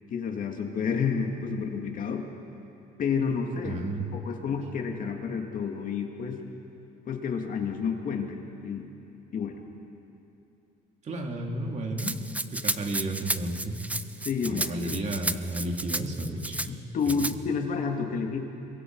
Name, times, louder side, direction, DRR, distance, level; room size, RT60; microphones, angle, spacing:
voice 1, 0.1-2.3 3.0-3.8 4.1-6.4 7.1-8.9 9.3-9.6 14.2-14.9 16.7-18.4, left 5 dB, 55° left, 3 dB, 2.3 m, -30 dB
voice 2, 3.6-4.2 11.0-12.1 12.5-13.8 14.4-16.8, right 1 dB, 45° right, 2 dB, 2.8 m, -32 dB
Rattle (instrument), 12.0-16.7 17.0-17.3, right 2 dB, 10° right, 0.6 m, -32 dB
26.5 x 23.0 x 4.8 m, 2.8 s
cardioid pair, 110°, 17 cm